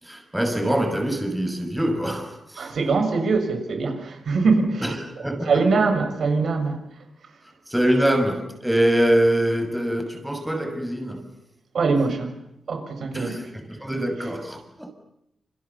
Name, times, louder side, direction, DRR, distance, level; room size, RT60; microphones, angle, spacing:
voice 1, 0.0-2.7 4.8-5.6 7.4-11.3 13.1-13.4 13.7-14.9, right 1 dB, 5° right, 5 dB, 6.1 m, -24 dB
voice 2, 2.6-6.8 11.7-12.3 12.7-13.5, right 4 dB, 65° right, 6 dB, 6.9 m, -23 dB
29.0 x 28.5 x 7.1 m, 0.78 s
cardioid pair, 100°, 0 cm